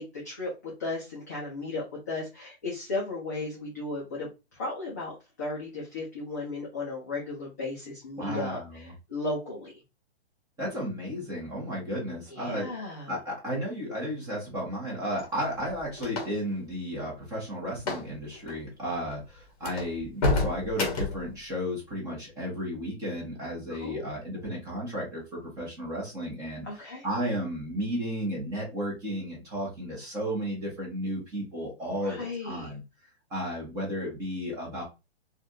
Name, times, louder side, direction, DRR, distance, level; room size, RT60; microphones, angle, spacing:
voice 1, 0.0-9.7 12.3-13.2 23.7-24.0 26.6-27.1 31.8-32.7, left 2 dB, 15° left, -5 dB, 0.4 m, -35 dB
voice 2, 8.2-8.7 10.6-12.7 13.1-25.2 25.6-26.6 27.0-32.8 33.3-34.8, equal, 10° right, -4 dB, 1.0 m, -33 dB
sound 1, 15.2-16.6 17.8-18.1 18.4-18.6 19.1-19.2 19.6-21.3, left 2 dB, 35° left, 0.9 m, -29 dB
3.3 x 2.4 x 2.6 m, 0.26 s
hypercardioid pair, 165°, 33 cm